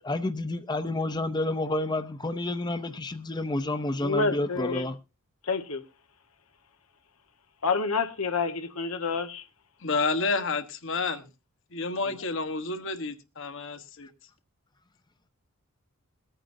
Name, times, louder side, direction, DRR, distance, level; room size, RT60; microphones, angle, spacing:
voice 1, 0.0-5.0 14.0-14.1, left 2 dB, 20° left, 0.6 m, -30 dB
voice 2, 4.0-4.9 5.4-5.8 7.6-9.4, left 4 dB, 90° left, 1.3 m, -28 dB
voice 3, 9.8-11.3 11.7-14.1, left 3 dB, 60° left, 1.2 m, -30 dB
22.0 x 8.9 x 2.6 m
head